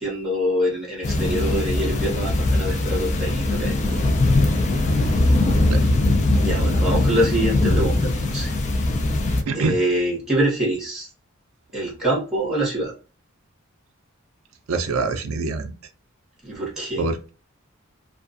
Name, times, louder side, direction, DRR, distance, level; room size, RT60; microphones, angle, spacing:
voice 1, 0.0-4.0 4.8-5.2 6.3-8.6 9.5-11.1 11.7-12.9 16.4-17.1, right 1 dB, 5° right, -4 dB, 1.0 m, -25 dB
sound 1, 1.0-9.4, left 2 dB, 35° left, 0.4 m, -21 dB
voice 2, 9.5-9.8 14.7-15.7 17.0-17.3, right 3 dB, 70° right, 6 dB, 0.4 m, -25 dB
2.4 x 2.3 x 2.4 m, 0.33 s
head